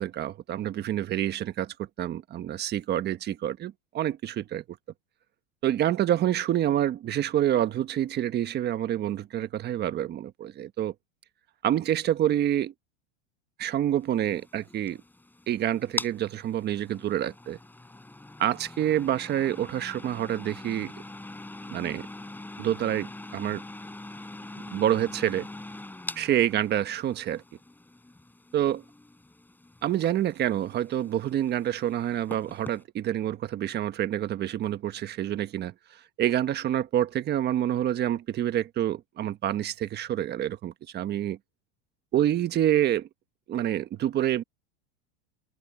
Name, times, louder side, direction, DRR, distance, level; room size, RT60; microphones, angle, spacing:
voice 1, 0.0-4.6 5.6-10.9 11.6-12.7 13.6-15.0 15.5-17.6 18.4-20.9 21.7-22.1 22.6-23.6 24.7-25.5 26.1-27.4 28.5-28.8 29.8-35.7 36.2-41.4 42.1-43.1 43.5-44.4, right 11 dB, 30° right, 1.4 m, -27 dB
sound 1, 14.1-32.8, left 2 dB, 5° left, 6.5 m, -43 dB
supercardioid pair, 145°, 35 cm